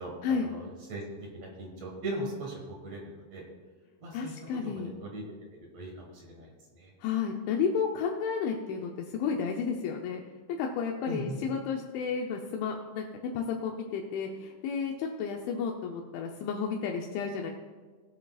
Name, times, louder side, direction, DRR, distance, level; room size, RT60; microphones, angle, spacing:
voice 1, 0.0-3.4 4.0-4.3 4.6-5.2 5.7-6.9 11.1-11.4, right 1 dB, 55° right, -1 dB, 1.9 m, -39 dB
voice 2, 4.1-4.9 7.0-10.2 10.5-17.5, left 6 dB, 80° left, 1 dB, 3.1 m, -32 dB
20.5 x 8.2 x 2.4 m, 1.4 s
omnidirectional pair, 5.4 m